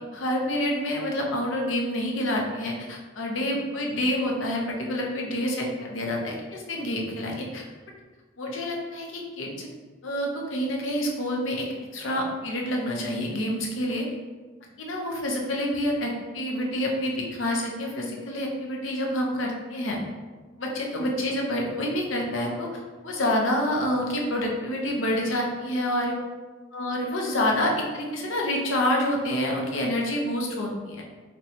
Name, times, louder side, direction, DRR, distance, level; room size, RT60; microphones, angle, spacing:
voice 1, 0.1-7.6 8.4-9.7 10.0-11.7 11.9-14.1 14.8-20.0 20.6-26.2 26.7-31.0, left 1 dB, 85° left, 0 dB, 0.6 m, -28 dB
4.0 x 2.2 x 2.9 m, 1.3 s
head